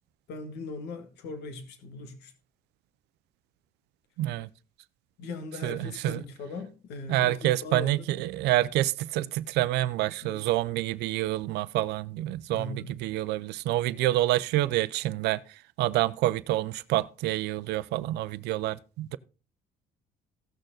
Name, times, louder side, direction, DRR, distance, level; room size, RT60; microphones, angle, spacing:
voice 1, 0.3-2.3 5.2-8.1 10.2-10.5 12.5-12.9, left 3 dB, 80° left, 2.0 m, -39 dB
voice 2, 4.2-4.5 5.6-6.2 7.1-12.7 13.0-15.4 15.8-19.2, right 15 dB, 85° right, 0.6 m, -27 dB
15.5 x 6.5 x 3.9 m
cardioid pair, 110°, 17 cm